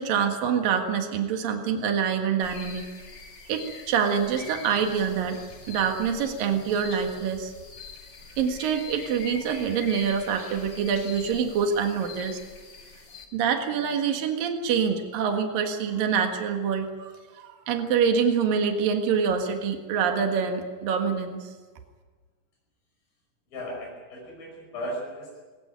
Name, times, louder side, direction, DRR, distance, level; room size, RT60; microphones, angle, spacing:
voice 1, 0.0-2.9 3.5-5.4 5.7-7.5 8.4-12.4 13.3-21.5, right 7 dB, 75° right, 5 dB, 3.5 m, -26 dB
sound 1, 2.4-13.3, left 5 dB, 35° left, 2.3 m, -44 dB
voice 2, 23.5-25.6, equal, 85° left, -2 dB, 7.5 m, -36 dB
19.5 x 19.5 x 9.2 m, 1.4 s
omnidirectional pair, 4.0 m